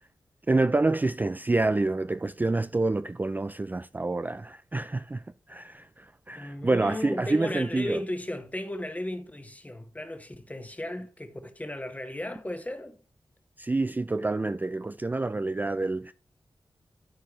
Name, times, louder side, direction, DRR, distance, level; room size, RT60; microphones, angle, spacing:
voice 1, 0.5-8.0 13.6-16.1, right 2 dB, 20° right, 0.3 m, -27 dB
voice 2, 6.3-13.0, left 1 dB, 15° left, 1.4 m, -35 dB
13.0 x 4.6 x 3.2 m
wide cardioid pair, 80°, 9 cm